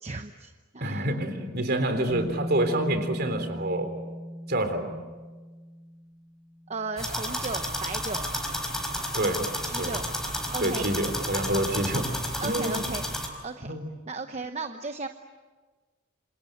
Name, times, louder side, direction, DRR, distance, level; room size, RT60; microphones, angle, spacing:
voice 1, 0.0-1.2 6.7-8.3 9.6-10.0 10.5-10.9 12.4-13.0 13.4-13.8 14.1-15.1, right 3 dB, 35° right, 7 dB, 1.0 m, -35 dB
voice 2, 0.8-3.9 4.5-4.9 9.1-9.5 9.8-9.9 10.6-12.1 12.4-12.8 13.6-13.9, right 1 dB, 50° right, 8 dB, 3.7 m, -27 dB
Bass guitar, 2.1-8.1, equal, 20° left, 3.8 m, -38 dB
sound 1, 7.0-13.3, equal, ahead, 4.5 m, -31 dB
27.5 x 27.5 x 7.9 m, 1.4 s
head